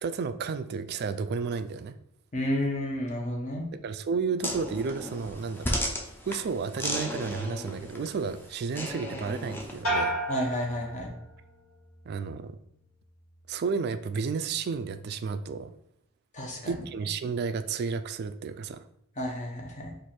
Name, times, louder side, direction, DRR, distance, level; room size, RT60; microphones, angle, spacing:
voice 1, 0.0-1.9 3.8-5.8 6.3-10.2 12.1-12.6 13.5-15.7 16.6-18.8, right 5 dB, 45° right, 11 dB, 0.3 m, -32 dB
voice 2, 2.3-3.7 10.3-11.1 16.3-16.7 19.2-19.9, equal, 35° left, 1 dB, 0.9 m, -31 dB
sound 1, 4.4-9.8, equal, 10° left, 0.5 m, -35 dB
sound 2, 9.8-11.6 12.0-12.6, right 1 dB, 65° left, 1.7 m, -32 dB
4.6 x 2.6 x 4.2 m, 0.72 s
head